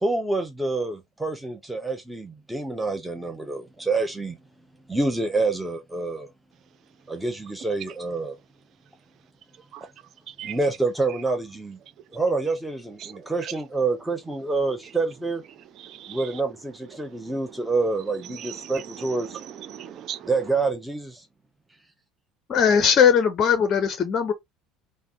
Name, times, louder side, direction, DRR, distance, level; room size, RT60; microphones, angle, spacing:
voice 1, 0.0-4.4 4.9-6.3 7.1-8.4 10.4-11.8 12.1-15.4 16.1-19.4 20.2-21.2, right 3 dB, 5° right, 0.6 m, -27 dB
voice 2, 15.8-16.2 17.5-17.6 18.4-20.3, right 10 dB, 45° right, 0.4 m, -38 dB
voice 3, 22.5-24.3, left 7 dB, 35° left, 0.5 m, -19 dB
3.3 x 2.0 x 2.6 m
figure-of-eight pair, 60°, 0 cm